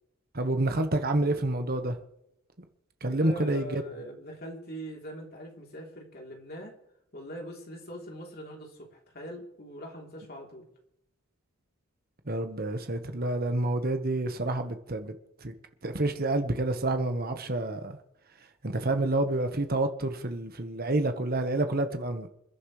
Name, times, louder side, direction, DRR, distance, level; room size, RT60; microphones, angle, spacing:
voice 1, 0.3-2.0 3.0-3.8 12.3-15.1 15.4-15.5 15.8-18.0 18.6-22.3, right 2 dB, 45° right, 1.3 m, -28 dB
voice 2, 3.0-6.7 7.1-10.7, equal, 45° left, 3.4 m, -42 dB
27.5 x 11.0 x 3.3 m
head